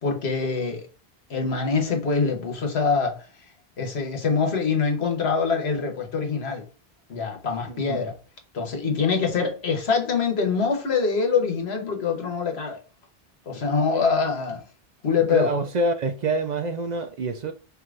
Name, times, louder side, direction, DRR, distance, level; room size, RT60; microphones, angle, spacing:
voice 1, 0.0-0.9 1.3-3.3 3.8-6.6 7.1-8.2 8.5-12.8 13.5-14.6 15.0-15.5, left 5 dB, 85° left, 1.3 m, -24 dB
voice 2, 15.3-17.5, right 2 dB, 55° right, 0.5 m, -26 dB
4.6 x 2.8 x 2.4 m
omnidirectional pair, 1.0 m